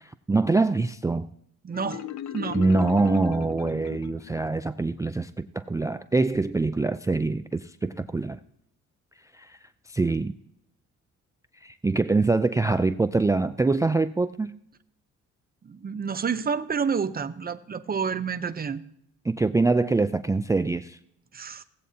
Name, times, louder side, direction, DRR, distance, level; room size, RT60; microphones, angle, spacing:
voice 1, 0.3-1.3 2.5-8.4 9.4-9.6 9.9-10.3 11.6-14.5 19.3-21.0, right 3 dB, 10° right, 0.3 m, -24 dB
voice 2, 1.6-2.1 2.3-2.6 15.6-18.8 21.3-21.6, right 6 dB, 30° right, 0.7 m, -29 dB
Marimba xylophone, 1.7-4.5, left 12 dB, 65° left, 0.5 m, -37 dB
16.5 x 8.4 x 2.8 m
cardioid pair, 90°, 30 cm